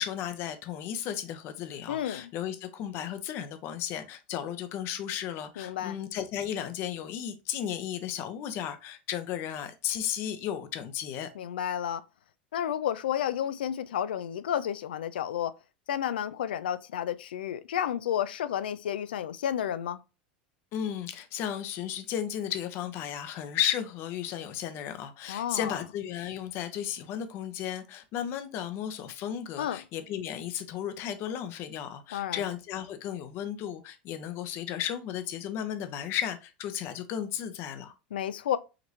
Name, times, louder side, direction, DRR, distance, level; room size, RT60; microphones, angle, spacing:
voice 1, 0.0-11.3 20.7-37.9, left 10 dB, 50° left, 0.8 m, -34 dB
voice 2, 1.9-2.3 5.6-6.0 11.4-12.0 12.5-15.5 15.9-20.0 25.3-25.8 29.6-29.8 32.1-32.4 38.1-38.6, left 10 dB, 75° left, 0.4 m, -31 dB
5.0 x 3.0 x 2.7 m
hypercardioid pair, 95°, 5 cm